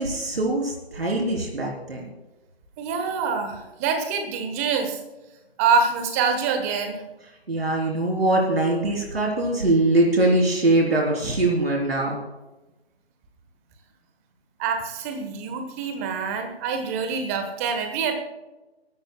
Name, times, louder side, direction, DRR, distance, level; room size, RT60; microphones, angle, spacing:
voice 1, 0.0-2.1 7.5-12.2, right 2 dB, 65° right, -1 dB, 3.8 m, -22 dB
voice 2, 2.8-5.0 5.6-7.0 14.6-18.1, right 5 dB, 15° right, 6 dB, 1.2 m, -25 dB
23.0 x 12.5 x 2.3 m, 1.1 s
figure-of-eight pair, 145°, 33 cm